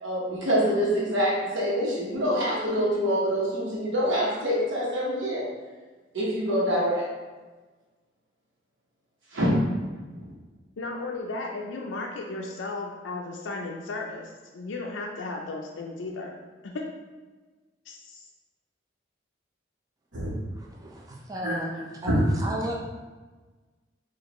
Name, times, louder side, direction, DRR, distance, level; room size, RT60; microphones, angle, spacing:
voice 1, 0.0-5.4 6.1-7.0 9.3-9.5 20.1-20.3 21.4-21.5 22.0-22.2, equal, 80° right, -6 dB, 1.1 m, -25 dB
voice 2, 10.8-16.4 16.6-16.9 17.9-18.3, left 3 dB, 80° left, 0 dB, 0.4 m, -35 dB
voice 3, 20.5-21.7 22.0-22.7, right 1 dB, 20° right, -1 dB, 0.4 m, -34 dB
4.9 x 2.5 x 3.0 m, 1.3 s
head